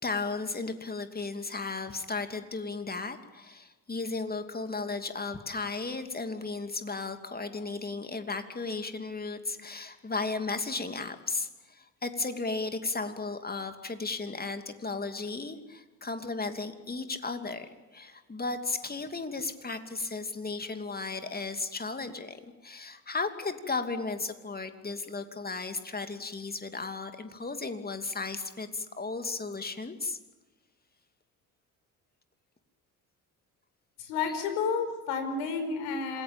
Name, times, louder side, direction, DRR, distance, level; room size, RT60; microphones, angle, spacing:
voice 1, 0.0-30.2, left 3 dB, 20° left, 8 dB, 2.8 m, -35 dB
voice 2, 34.0-36.2, left 5 dB, 70° left, 7 dB, 5.0 m, -31 dB
27.0 x 20.5 x 9.0 m, 1.2 s
figure-of-eight pair, 55°, 45 cm